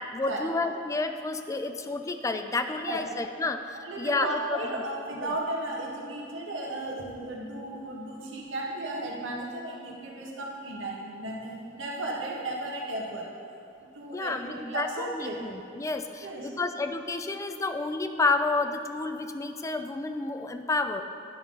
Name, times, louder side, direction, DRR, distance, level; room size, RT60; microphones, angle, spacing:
voice 1, 0.0-4.8 5.1-5.3 14.1-21.0, left 3 dB, 15° left, 7 dB, 0.3 m, -30 dB
voice 2, 2.7-3.0 3.8-13.3 13.8-15.4 16.2-16.5, right 1 dB, 70° right, -2 dB, 1.3 m, -35 dB
10.5 x 3.8 x 5.4 m, 2.6 s
head